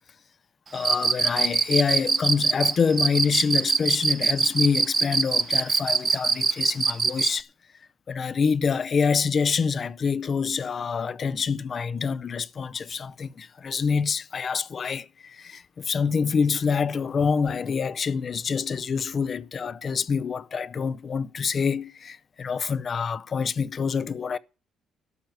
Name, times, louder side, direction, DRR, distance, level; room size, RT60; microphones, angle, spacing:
voice 1, 0.7-7.5 8.1-24.4, left 5 dB, 45° left, 0.6 m, -26 dB
Cricket, 0.8-7.4, right 5 dB, 40° right, 1.2 m, -22 dB
12.0 x 6.4 x 9.4 m
cardioid pair, 90°, 0 cm